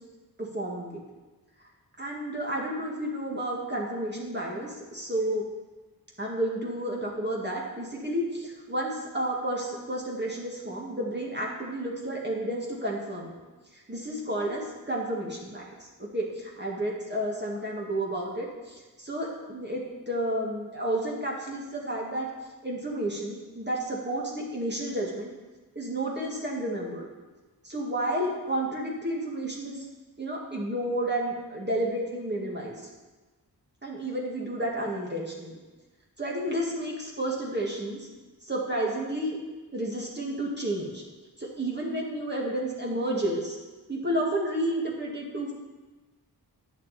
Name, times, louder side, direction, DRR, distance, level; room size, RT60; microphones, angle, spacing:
voice 1, 0.4-1.0 2.0-5.4 6.2-13.3 13.9-15.6 16.1-22.3 22.6-25.3 25.8-27.1 27.6-29.8 30.2-32.7 33.8-35.5 36.2-38.1 38.5-39.4 39.7-41.0 41.4-43.6 43.9-45.5, right 1 dB, 25° right, -3 dB, 2.0 m, -31 dB
10.5 x 7.3 x 4.3 m, 1.2 s
cardioid pair, 50°, 38 cm